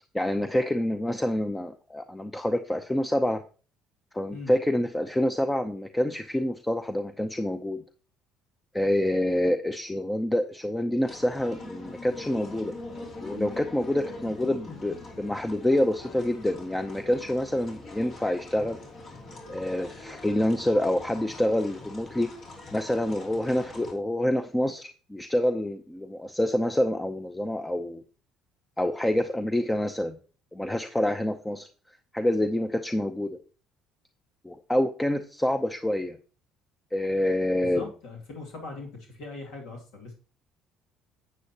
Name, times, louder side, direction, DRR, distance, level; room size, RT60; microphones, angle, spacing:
voice 1, 0.1-3.4 4.1-7.8 8.7-12.7 13.2-18.8 19.5-22.3 22.7-28.0 28.8-30.2 30.5-31.7 32.1-33.4 34.4-36.2 36.9-37.9, left 1 dB, 10° left, 8 dB, 0.7 m, -27 dB
sound 1, 11.1-23.9, left 3 dB, 55° left, 3.0 m, -43 dB
voice 2, 37.7-38.9 39.2-40.1, left 3 dB, 75° left, -1 dB, 2.6 m, -40 dB
9.5 x 8.0 x 2.9 m, 0.38 s
supercardioid pair, 70°, 0 cm